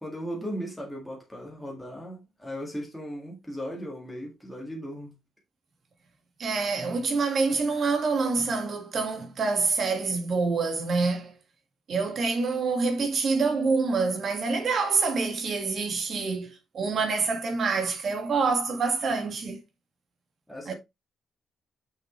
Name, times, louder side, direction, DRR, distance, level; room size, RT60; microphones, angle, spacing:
voice 1, 0.0-5.1 20.5-20.7, equal, ahead, 1.8 m, -37 dB
voice 2, 6.4-11.3 11.9-19.6 20.7-20.8, right 4 dB, 45° right, 1.7 m, -26 dB
6.6 x 6.2 x 3.0 m
wide cardioid pair, 175°, 0 cm